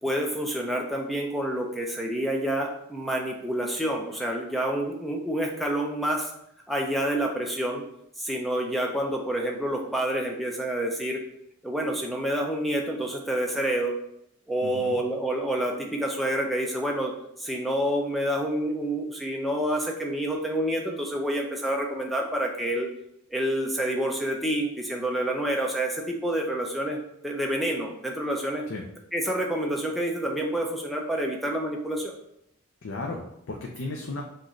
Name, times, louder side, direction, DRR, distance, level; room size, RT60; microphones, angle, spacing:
voice 1, 0.0-6.3 6.7-7.8 8.2-11.2 11.6-13.9 14.5-17.1 17.4-22.9 23.3-27.0 27.2-28.7 29.1-32.1, right 1 dB, ahead, 0 dB, 0.5 m, -28 dB
voice 2, 14.6-15.0 28.7-28.8 32.8-34.2, left 2 dB, 65° left, 0 dB, 0.5 m, -35 dB
6.1 x 2.6 x 3.1 m, 0.77 s
head